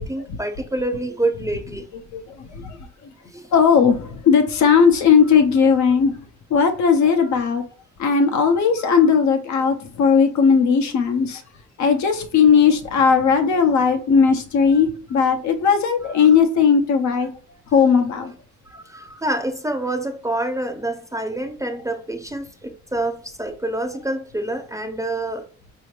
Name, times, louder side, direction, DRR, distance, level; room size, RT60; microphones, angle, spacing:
voice 1, 0.0-1.9 3.3-3.5 18.7-25.4, right 1 dB, 10° right, 0.4 m, -27 dB
voice 2, 2.1-2.8 3.5-6.2 6.5-7.6 8.0-11.4 11.8-17.3 17.7-18.3, left 6 dB, 70° left, 0.7 m, -17 dB
4.2 x 2.8 x 3.1 m
cardioid pair, 90°, 30 cm